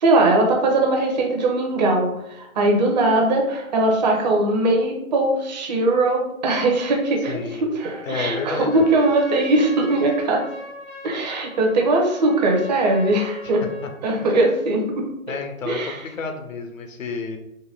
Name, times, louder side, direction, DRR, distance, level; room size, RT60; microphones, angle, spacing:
voice 1, 0.0-10.4 11.0-13.6 14.0-15.0 15.6-16.0, right 2 dB, 30° right, 1 dB, 0.8 m, -20 dB
voice 2, 7.3-7.6 8.0-8.7 13.8-13.9 14.2-14.4 15.3-17.4, left 4 dB, 70° left, 5 dB, 0.8 m, -30 dB
Trumpet, 8.5-14.0, equal, 10° left, 0.4 m, -39 dB
3.9 x 2.2 x 4.1 m, 0.82 s
figure-of-eight pair, 135°, 42 cm